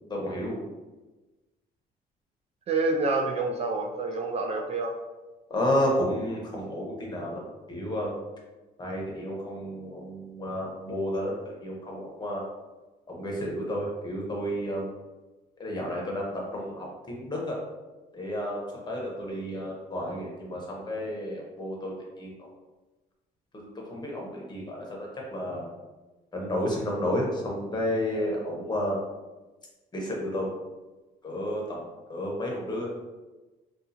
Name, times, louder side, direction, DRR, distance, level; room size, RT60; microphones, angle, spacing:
voice 1, 0.1-0.6 5.5-7.4 7.7-8.2 8.8-12.4 13.1-14.9 15.6-17.6 18.1-22.5 23.5-25.7 26.3-29.0 29.9-30.5 31.2-31.8 32.1-32.9, equal, 25° left, -2 dB, 1.0 m, -31 dB
voice 2, 2.7-5.0, right 3 dB, 40° right, 0 dB, 0.4 m, -27 dB
3.7 x 2.4 x 2.8 m, 1.2 s
cardioid pair, 110°, 17 cm